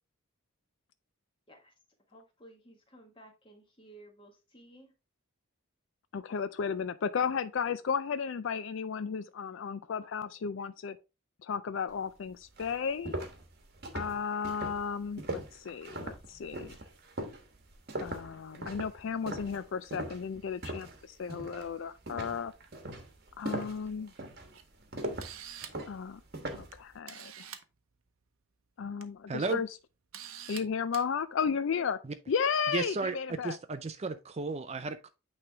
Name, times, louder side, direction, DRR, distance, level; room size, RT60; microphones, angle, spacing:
voice 1, 2.1-4.9 31.7-32.0, right 1 dB, 25° left, 1.4 m, -55 dB
voice 2, 6.1-11.0 11.4-13.1 13.9-16.8 18.0-22.5 23.4-24.1 25.9-26.2 26.5-27.5 28.8-29.7 30.5-32.0 32.3-33.6, left 6 dB, 60° left, 0.4 m, -34 dB
sound 1, 12.1-12.2 12.6-21.0 21.3-21.7 22.1-26.8, right 1 dB, 45° right, 1.1 m, -40 dB
Camera, 24.5-24.6 25.0-25.9 26.7-26.8 27.1-27.6 28.8-29.0 29.5-29.6 30.1-30.6 30.9-31.1, right 10 dB, 80° right, 0.7 m, -45 dB
voice 3, 29.3-29.6 32.7-33.2 33.4-35.1, right 3 dB, 30° right, 0.4 m, -34 dB
8.7 x 3.3 x 3.3 m
head